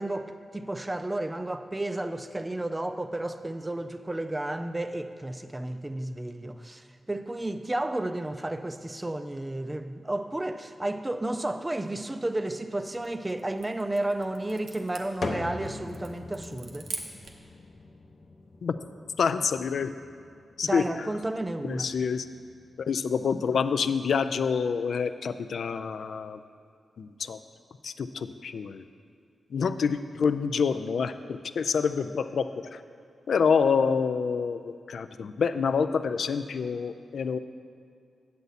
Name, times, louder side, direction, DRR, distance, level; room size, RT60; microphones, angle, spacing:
voice 1, 0.0-16.9 20.6-21.9, right 1 dB, 15° right, 10 dB, 0.4 m, -32 dB
sound 1, 12.8-17.5, right 4 dB, 85° right, 0.8 m, -44 dB
sound 2, 15.2-22.9, left 3 dB, 55° left, 0.7 m, -42 dB
voice 2, 19.2-19.9 20.6-20.8 21.6-22.3 22.8-26.4 27.0-27.4 27.8-28.8 29.5-32.8 33.3-37.4, left 6 dB, 75° left, 11 dB, 0.3 m, -27 dB
8.2 x 8.0 x 4.0 m, 2.3 s
wide cardioid pair, 95°, 0 cm